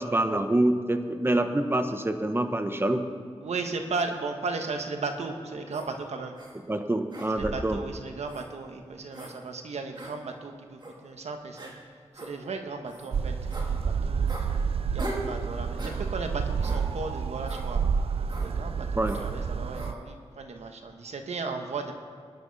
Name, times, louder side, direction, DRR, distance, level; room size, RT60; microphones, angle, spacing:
voice 1, 0.0-3.0 6.7-7.8 18.9-19.2, right 1 dB, 20° right, 8 dB, 1.1 m, -26 dB
voice 2, 3.4-6.3 7.3-11.7 12.1-14.4 14.9-17.8 18.4-18.9 19.1-21.9, right 4 dB, 90° right, 5 dB, 1.2 m, -35 dB
sound 1, 5.7-5.9 6.4-6.5 7.1-7.7 8.3-8.5 9.1-9.3 10.0-10.1 10.8-10.9 11.6-11.7 12.1-12.3 12.9-13.1 13.5-13.7 14.3-14.5 15.0-15.3 15.8-16.0 16.6-16.8 17.5-17.7 18.3-18.5 19.0-19.3 19.7-19.9, right 1 dB, 45° right, 2.9 m, -39 dB
sound 2, 13.1-19.9, right 6 dB, 65° right, 0.5 m, -29 dB
19.0 x 10.5 x 4.1 m, 2.3 s
cardioid pair, 60°, 11 cm